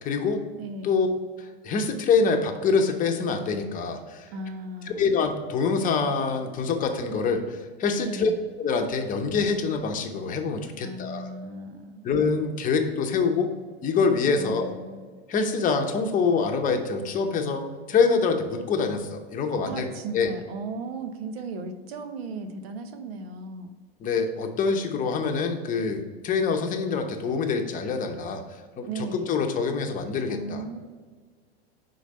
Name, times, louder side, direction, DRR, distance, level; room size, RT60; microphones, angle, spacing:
voice 1, 0.0-0.4 0.8-1.1 1.4-4.3 4.9-8.3 8.6-11.3 12.0-13.5 13.8-14.7 15.3-19.9 20.1-20.3 24.0-30.6, left 5 dB, 25° left, 4 dB, 0.8 m, -25 dB
voice 2, 0.6-1.0 4.3-5.1 8.0-8.4 10.8-12.0 14.3-15.0 19.6-23.7 28.9-29.4 30.3-30.8, right 3 dB, 70° right, 8 dB, 0.9 m, -36 dB
5.0 x 3.9 x 5.4 m, 1.5 s
hypercardioid pair, 110°, 32 cm